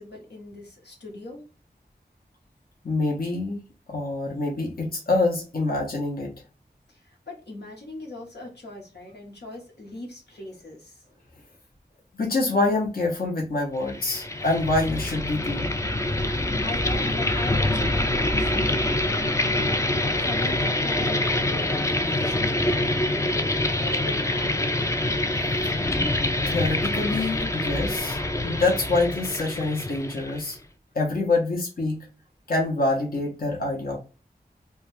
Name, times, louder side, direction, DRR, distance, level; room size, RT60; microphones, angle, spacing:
voice 1, 0.0-1.5 6.9-11.0 16.2-24.8, left 2 dB, 85° left, -1 dB, 0.9 m, -40 dB
voice 2, 2.8-3.6 3.9-6.3 12.1-15.7 25.2-25.3 25.6-25.8 26.5-30.6 30.9-32.0 32.5-34.0, left 2 dB, 60° left, -1 dB, 0.7 m, -26 dB
sound 1, 13.8-30.5, left 1 dB, 20° left, 0.3 m, -25 dB
2.3 x 2.2 x 3.1 m, 0.33 s
wide cardioid pair, 50°, 17 cm